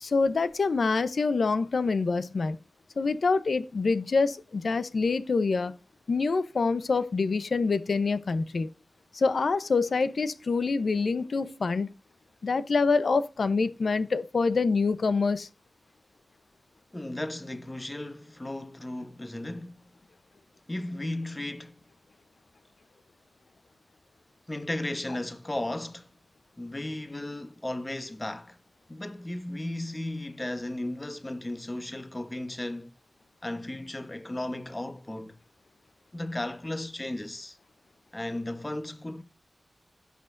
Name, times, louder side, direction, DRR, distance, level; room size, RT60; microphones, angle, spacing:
voice 1, 0.0-2.6 3.0-5.7 6.1-8.7 9.1-11.9 12.4-15.5, left 4 dB, 70° left, 0.8 m, -26 dB
voice 2, 16.9-19.8 20.7-21.8 24.5-26.1 26.6-28.6 28.9-32.9 33.4-35.4 36.1-37.6 38.1-39.2, left 1 dB, 20° left, 1.1 m, -35 dB
16.5 x 6.0 x 2.6 m
wide cardioid pair, 80°, 0 cm